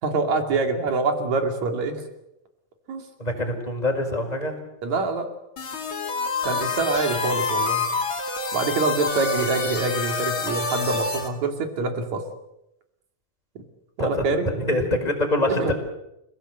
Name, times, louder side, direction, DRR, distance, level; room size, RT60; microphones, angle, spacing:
voice 1, 0.0-2.0 2.9-3.0 4.8-5.3 6.4-7.9 8.5-12.2 13.6-13.7 14.0-14.5 15.5-15.7, right 3 dB, 50° right, 5 dB, 3.7 m, -25 dB
voice 2, 3.2-4.5 14.0-15.7, left 1 dB, 10° left, 2 dB, 4.9 m, -25 dB
sound 1, 5.6-11.3, left 4 dB, 35° left, 3.4 m, -27 dB
29.5 x 17.5 x 8.0 m, 0.86 s
omnidirectional pair, 4.4 m